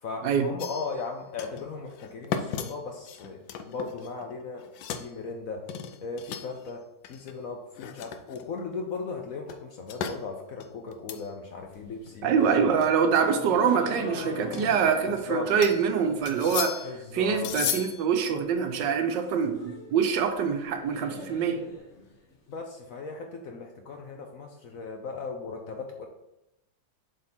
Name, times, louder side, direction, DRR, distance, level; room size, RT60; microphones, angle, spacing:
voice 1, 0.0-3.4 3.7-4.7 5.0-5.7 6.0-6.8 7.1-12.8 15.1-15.5 16.8-17.5 22.5-26.1, left 4 dB, 65° left, 3 dB, 0.9 m, -37 dB
sound 1, 0.6-1.1 1.4-1.7 2.0-4.3 4.6-5.1 5.7-6.7 7.0-7.3 7.7-8.6 9.5-10.2 10.6-11.3 11.6-11.7 12.1-12.2 12.8-13.2 14.2-15.2 15.6-15.9 16.3-17.0 17.4-18.0, left 8 dB, 85° left, 1.3 m, -35 dB
sound 2, 11.6-16.6 16.9-17.5 17.8-17.9 18.1-18.2 18.5-22.5, left 3 dB, 45° left, 1.2 m, -42 dB
voice 2, 12.2-16.9 17.1-21.6, right 6 dB, 80° right, 6 dB, 1.4 m, -25 dB
7.7 x 3.7 x 4.3 m, 0.89 s
omnidirectional pair, 2.0 m